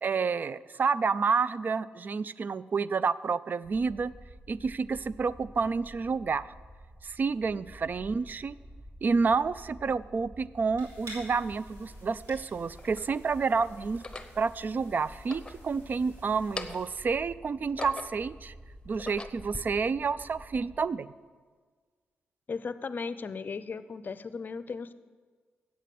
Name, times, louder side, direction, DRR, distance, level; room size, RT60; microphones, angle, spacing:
voice 1, 0.0-4.1 4.5-6.5 7.0-8.6 9.0-14.0 14.4-18.5 18.9-21.1, right 5 dB, 45° right, 18 dB, 0.3 m, -29 dB
sound 1, 3.6-20.8, right 1 dB, 20° right, 3.6 m, -50 dB
sound 2, 10.8-16.9, equal, 80° right, 3.6 m, -52 dB
sound 3, 11.4-11.5 12.3-13.1 13.9-14.4 15.1-16.1 16.4-17.0 17.5-18.3 18.8-19.6, left 2 dB, 20° left, 0.8 m, -41 dB
voice 2, 22.5-24.9, left 5 dB, 45° left, 14 dB, 0.5 m, -36 dB
8.4 x 7.4 x 8.4 m, 1.5 s
cardioid pair, 65°, 4 cm